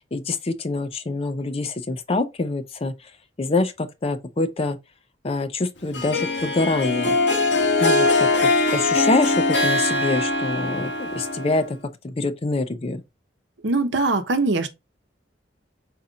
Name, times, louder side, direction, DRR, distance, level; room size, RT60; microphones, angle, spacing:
voice 1, 0.1-3.1 3.4-4.8 5.2-7.2 7.8-8.3 8.7-11.8 12.0-13.0, left 2 dB, 35° left, 0.5 m, -25 dB
Harp, 5.9-11.7, left 2 dB, 90° left, 1.2 m, -21 dB
voice 2, 13.6-14.7, right 3 dB, 85° right, 0.9 m, -21 dB
5.2 x 4.2 x 2.4 m
head